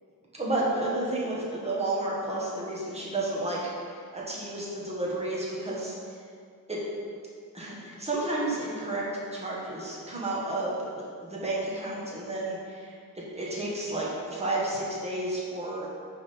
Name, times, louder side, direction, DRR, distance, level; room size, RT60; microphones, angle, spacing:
voice 1, 0.3-5.9 6.7-6.8 7.5-9.0 9.3-13.0 13.3-15.9, right 2 dB, 15° right, -6 dB, 1.4 m, -31 dB
9.2 x 3.6 x 4.2 m, 2.2 s
wide cardioid pair, 175°, 36 cm